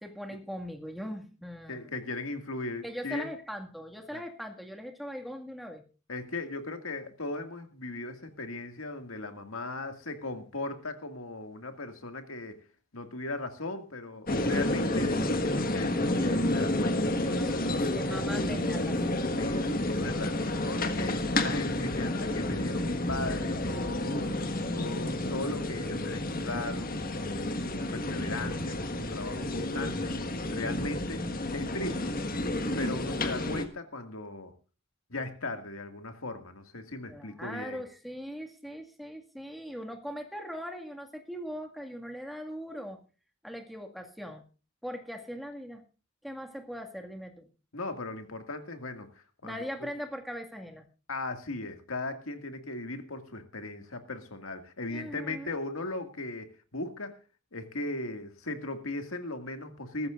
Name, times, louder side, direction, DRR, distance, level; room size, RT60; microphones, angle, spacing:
voice 1, 0.0-1.9 2.8-5.8 17.2-19.2 37.1-43.0 43.4-44.4 44.8-45.8 46.2-47.5 49.4-50.8 54.9-55.5, equal, ahead, 2 dB, 1.9 m, -40 dB
voice 2, 1.7-3.3 4.1-4.2 6.1-12.6 12.9-17.3 19.3-31.3 31.5-32.1 32.8-34.5 35.1-37.8 47.7-49.1 49.4-49.9 51.1-57.1 57.5-60.1, left 2 dB, 75° left, 7 dB, 2.1 m, -38 dB
sound 1, 14.3-33.7, left 1 dB, 45° left, 1.6 m, -30 dB
22.0 x 14.0 x 2.5 m, 0.33 s
head